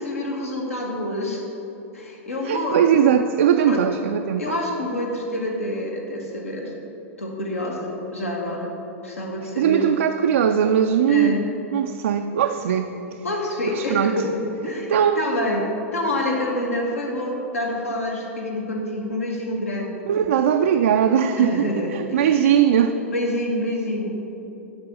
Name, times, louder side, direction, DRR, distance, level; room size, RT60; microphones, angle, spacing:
voice 1, 0.0-1.4 1.9-2.9 3.7-3.8 4.4-6.7 7.2-8.7 9.0-9.9 11.1-11.4 13.2-14.9 15.2-15.6 15.9-20.0 21.4-22.4 23.1-24.1, left 1 dB, 75° left, 0 dB, 1.5 m, -27 dB
voice 2, 2.4-4.5 9.6-11.4 11.7-13.3 13.7-14.2 14.9-15.2 20.1-21.6 21.9-23.0, right 9 dB, 65° right, 5 dB, 0.4 m, -20 dB
10.5 x 4.1 x 6.1 m, 2.9 s
figure-of-eight pair, 95°, 7 cm